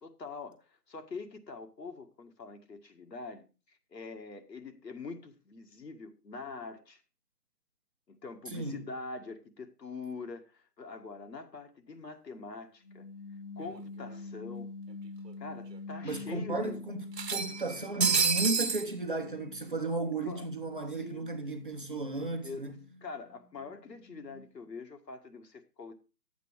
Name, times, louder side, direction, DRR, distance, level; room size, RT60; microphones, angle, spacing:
voice 1, 0.0-7.0 8.1-13.1 13.6-14.7 15.4-16.8 20.2-20.5 21.0-21.3 22.4-22.6 23.0-25.9, left 4 dB, 75° left, 2.0 m, -44 dB
voice 2, 8.5-8.8 16.0-17.0 17.3-22.8, right 2 dB, 30° right, 0.9 m, -34 dB
sound 1, 12.8-18.1 18.4-24.7, left 3 dB, 35° left, 1.3 m, -46 dB
sound 2, 13.7-13.8 14.1-14.2 15.3-15.4 15.7-15.8 17.1-18.9, right 5 dB, 80° right, 1.2 m, -29 dB
11.0 x 8.3 x 4.7 m
hypercardioid pair, 175°, 50 cm